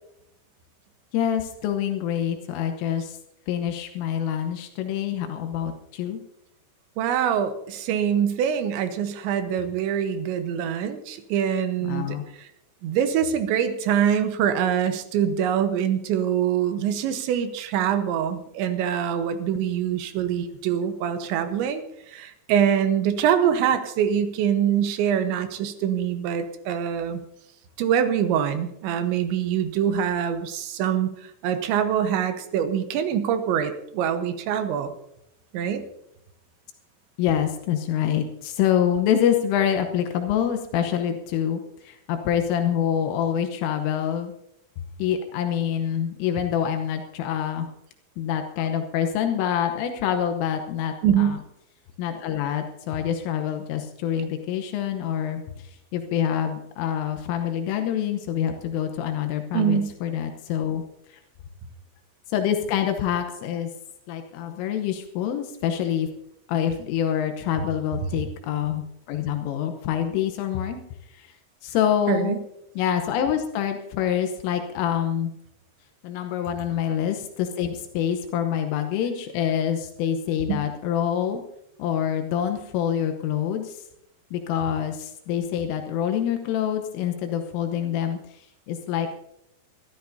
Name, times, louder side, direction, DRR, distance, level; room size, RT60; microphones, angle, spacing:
voice 1, 1.1-3.2 3.5-6.2 11.8-12.2 37.2-44.3 45.0-47.7 48.2-51.4 52.0-55.4 55.9-60.8 62.3-63.7 64.1-66.1 66.5-70.8 71.1-71.3 71.6-72.4 72.8-75.3 76.0-81.4 81.8-83.8 84.3-88.2 88.7-89.1, left 9 dB, 85° left, 6 dB, 3.5 m, -26 dB
voice 2, 7.0-12.5 12.8-27.2 27.8-34.9 35.5-35.8 51.0-51.4 59.5-59.9 72.1-72.4 80.5-80.6, right 9 dB, 75° right, 8 dB, 3.2 m, -24 dB
24.5 x 13.0 x 2.7 m, 0.79 s
omnidirectional pair, 5.7 m